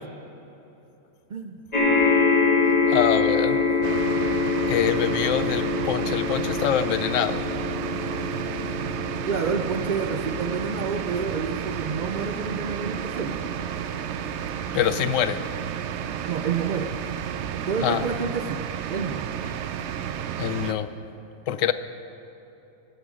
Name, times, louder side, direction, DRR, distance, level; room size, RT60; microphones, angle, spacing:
sound 1, 1.7-16.3 17.0-17.1 17.4-17.5, left 4 dB, 30° left, 1.5 m, -26 dB
voice 1, 2.9-3.6 4.7-7.5 14.7-15.4 17.8-18.1 20.4-20.9 21.5-21.7, left 10 dB, 70° left, 13 dB, 0.9 m, -25 dB
sound 2, 3.8-20.7, right 9 dB, 65° right, 0.8 m, -32 dB
voice 2, 9.3-13.3 16.3-16.9 17.7-18.6 18.9-19.2, right 5 dB, 85° right, 5 dB, 0.4 m, -29 dB
18.0 x 8.6 x 5.1 m, 3.0 s
omnidirectional pair, 1.5 m